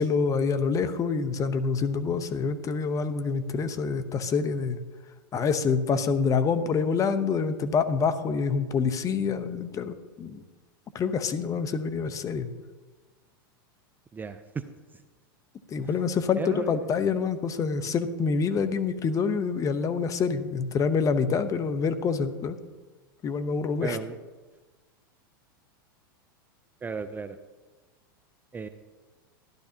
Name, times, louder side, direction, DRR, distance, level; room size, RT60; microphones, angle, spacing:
voice 1, 0.0-4.8 5.3-10.4 10.9-12.5 15.7-22.6 23.2-24.0, left 5 dB, 30° left, 10 dB, 0.9 m, -26 dB
voice 2, 14.1-14.6 16.4-16.7 23.8-24.2 26.8-27.4 28.5-28.7, right 5 dB, 15° right, 10 dB, 0.5 m, -35 dB
13.5 x 11.5 x 2.8 m, 1.3 s
hypercardioid pair, 110°, 12 cm